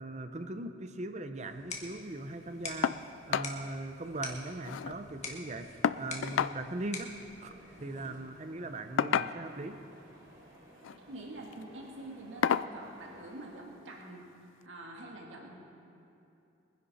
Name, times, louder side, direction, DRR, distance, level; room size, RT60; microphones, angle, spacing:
voice 1, 0.0-7.1 7.4-7.5 7.8-9.8, right 2 dB, 35° right, 8 dB, 0.7 m, -40 dB
sound 1, 1.4-8.4, left 3 dB, 35° left, 1.5 m, -46 dB
sound 2, 2.8-3.0 3.3-3.5 3.9-4.0 4.3-5.0 5.8-6.6 7.8-8.0 9.0-9.6 10.7-11.0 11.5-11.6 12.4-12.7 14.0-14.1 14.6-14.7, left 8 dB, 85° left, 0.3 m, -30 dB
sound 3, 7.5-13.6, right 1 dB, 60° right, 3.2 m, -56 dB
voice 2, 11.1-14.2 14.6-15.6, right 2 dB, 90° right, -1 dB, 1.9 m, -46 dB
22.5 x 10.5 x 4.2 m, 2.8 s
head